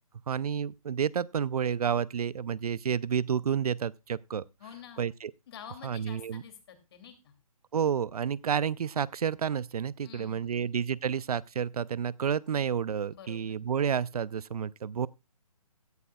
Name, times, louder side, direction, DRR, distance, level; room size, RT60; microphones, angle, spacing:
voice 1, 0.3-4.4 5.0-5.3 5.8-6.4 7.7-15.1, right 7 dB, 75° right, 0.5 m, -30 dB
voice 2, 4.6-5.1 5.5-7.3 10.0-10.8 13.1-13.6, left 8 dB, 40° left, 2.6 m, -49 dB
16.5 x 11.5 x 2.3 m
hypercardioid pair, 160°, 19 cm